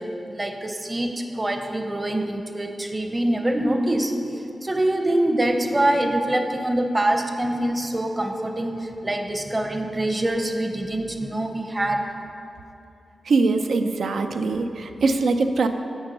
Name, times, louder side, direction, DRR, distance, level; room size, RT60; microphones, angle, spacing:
voice 1, 0.0-12.1, right 1 dB, 25° right, 5 dB, 0.7 m, -25 dB
voice 2, 13.3-15.7, right 3 dB, 80° right, 7 dB, 0.4 m, -22 dB
8.0 x 4.4 x 5.5 m, 2.8 s
cardioid pair, 55°, 0 cm